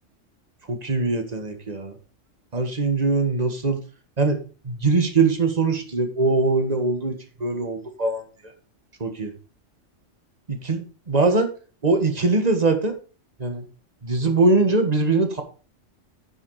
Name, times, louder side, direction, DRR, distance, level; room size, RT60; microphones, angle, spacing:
voice 1, 0.7-1.9 2.5-3.8 4.2-8.2 9.0-9.3 10.5-10.8 11.1-11.5 11.8-12.9 13.4-13.6 14.0-15.4, right 3 dB, 35° right, 6 dB, 1.6 m, -22 dB
9.6 x 5.6 x 4.8 m, 0.36 s
omnidirectional pair, 1.3 m